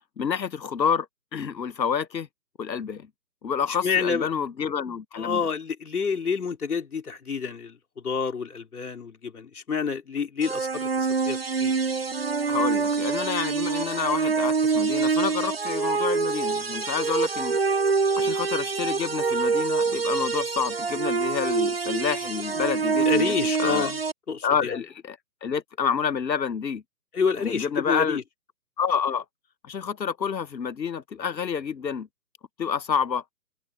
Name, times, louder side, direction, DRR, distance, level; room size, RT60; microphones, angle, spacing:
voice 1, 0.2-1.1 1.3-2.3 2.6-3.1 3.4-5.4 12.5-17.6 18.2-23.9 24.4-26.8 27.4-28.2 28.8-29.2 29.6-32.1 32.6-33.2, left 7 dB, 90° left, 0.8 m, -28 dB
voice 2, 3.8-4.3 5.1-7.8 8.0-11.7 23.0-24.0 24.3-24.8 27.1-28.2, left 6 dB, 60° left, 4.0 m, -28 dB
sound 1, 10.4-24.1, right 4 dB, 40° right, 0.5 m, -25 dB
figure-of-eight pair, 145°, 50 cm